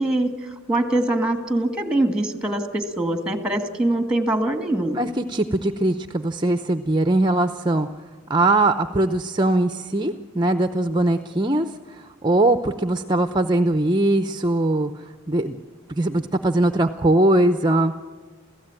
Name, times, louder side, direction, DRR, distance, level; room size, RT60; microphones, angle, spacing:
voice 1, 0.0-5.0, right 1 dB, 5° right, 7 dB, 2.0 m, -23 dB
voice 2, 5.0-7.9 8.3-11.7 12.2-14.9 15.3-15.6 16.0-17.9, right 2 dB, 20° right, 8 dB, 0.7 m, -20 dB
28.5 x 16.5 x 9.0 m, 1.4 s
head